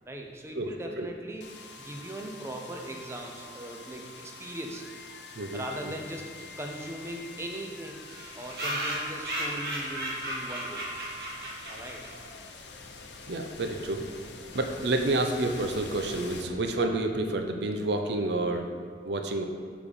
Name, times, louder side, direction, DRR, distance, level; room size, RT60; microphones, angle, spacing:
voice 1, 0.1-4.8 5.5-6.3 6.6-8.0 8.3-10.8 11.7-12.0, right 1 dB, 15° right, 1 dB, 0.7 m, -39 dB
sound 1, 1.4-17.2, left 2 dB, 80° left, 0.7 m, -45 dB
sound 2, 6.4-6.5 6.7-6.8 7.0-7.1 7.3-7.4 8.1-12.3, right 1 dB, 60° right, 1.8 m, -35 dB
voice 2, 13.3-14.0 14.5-18.7 19.1-19.4, right 2 dB, 75° right, 5 dB, 0.6 m, -29 dB
6.9 x 5.0 x 5.4 m, 2.1 s
head